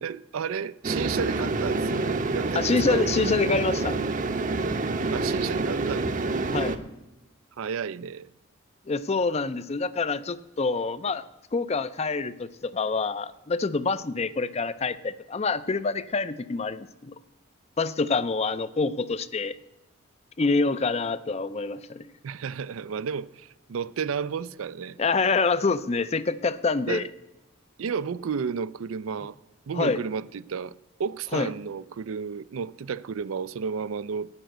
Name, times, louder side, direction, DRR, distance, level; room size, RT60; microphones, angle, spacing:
voice 1, 0.0-3.0 5.1-6.2 7.6-8.3 22.2-25.0 26.9-27.1 27.8-29.4 29.7-30.7 31.0-34.3, right 6 dB, 80° right, 0.4 m, -32 dB
sound 1, 0.8-6.8, right 3 dB, 40° right, 0.7 m, -27 dB
voice 2, 2.6-4.0 6.5-6.7 8.9-11.2 11.5-17.2 17.8-19.6 20.4-22.1 25.0-27.1 29.7-30.0 31.3-31.5, left 4 dB, 30° left, 0.4 m, -26 dB
9.9 x 8.9 x 7.8 m
head